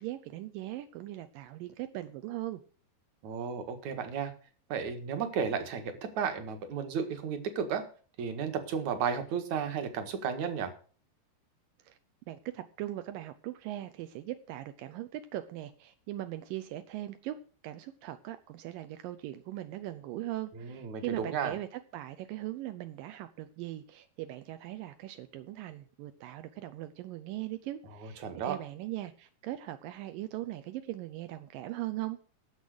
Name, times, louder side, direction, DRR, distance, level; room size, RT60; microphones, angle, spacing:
voice 1, 0.0-2.6 11.8-12.0 12.3-17.4 17.6-32.2, right 14 dB, 80° right, 10 dB, 2.0 m, -40 dB
voice 2, 3.2-4.3 4.7-7.8 8.2-10.7 20.6-21.6 28.0-28.6, right 6 dB, 55° right, 7 dB, 2.5 m, -33 dB
12.5 x 7.4 x 6.6 m, 0.41 s
omnidirectional pair, 5.0 m